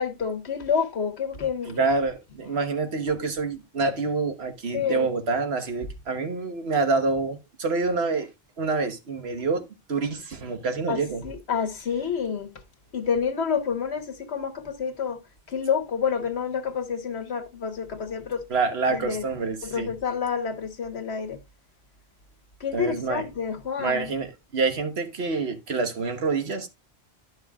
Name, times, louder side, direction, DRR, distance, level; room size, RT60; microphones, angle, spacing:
voice 1, 0.0-1.8 4.7-5.1 10.9-12.5 12.9-15.2 15.5-18.4 18.9-19.2 19.6-21.4 22.6-24.1, left 6 dB, 90° left, 1.5 m, -28 dB
voice 2, 1.6-8.3 8.6-11.3 18.5-19.9 22.7-23.3 23.8-26.7, right 4 dB, 80° right, 1.5 m, -27 dB
11.5 x 6.5 x 2.3 m
omnidirectional pair, 1.1 m